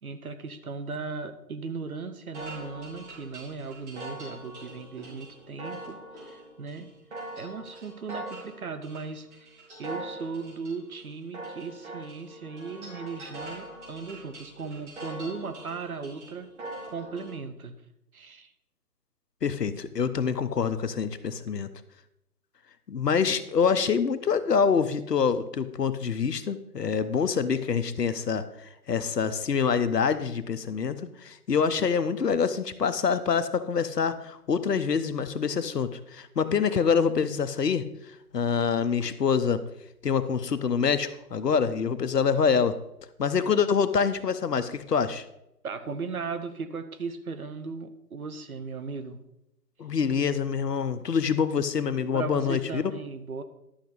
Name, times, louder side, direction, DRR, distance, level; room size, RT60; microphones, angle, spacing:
voice 1, 0.0-6.9 7.3-16.5 16.9-17.7 18.1-18.5 45.6-49.2 52.1-53.4, right 4 dB, 65° right, 10 dB, 1.0 m, -37 dB
sound 1, 2.3-17.3, right 1 dB, 45° right, 4.0 m, -42 dB
voice 2, 19.4-21.7 22.9-31.0 31.2-37.9 38.3-39.6 40.0-42.8 43.2-45.2 49.8-52.8, left 6 dB, 80° left, 12 dB, 0.9 m, -26 dB
11.5 x 6.0 x 4.0 m, 0.84 s
figure-of-eight pair, 150°, 48 cm